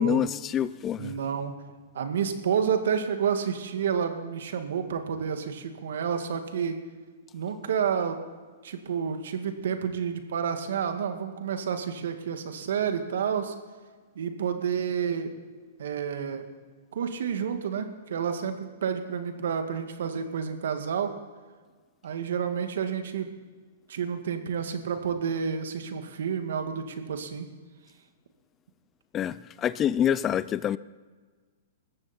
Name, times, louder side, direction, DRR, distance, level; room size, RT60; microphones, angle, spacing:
voice 1, 0.0-1.1 29.1-30.8, left 10 dB, 20° left, 0.4 m, -26 dB
voice 2, 1.0-1.6 1.9-6.8 7.3-8.2 8.6-13.5 14.2-15.3 15.8-16.4 16.9-18.6 18.8-21.1 22.0-23.3 23.9-27.5, right 7 dB, 75° right, 2.0 m, -29 dB
20.0 x 14.5 x 4.4 m
hypercardioid pair, 140°, 0 cm